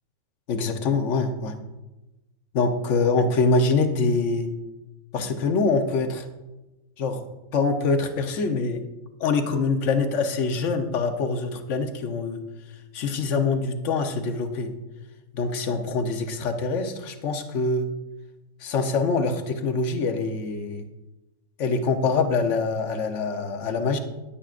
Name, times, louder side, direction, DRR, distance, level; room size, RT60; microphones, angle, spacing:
voice 1, 0.5-1.6 2.5-4.5 5.1-6.3 7.0-7.2 7.5-8.8 9.2-12.4 12.9-14.7 15.3-17.9 18.6-20.8 21.6-24.0, left 4 dB, 60° left, 6 dB, 1.2 m, -24 dB
15.5 x 10.5 x 2.5 m, 1.1 s
omnidirectional pair, 1.5 m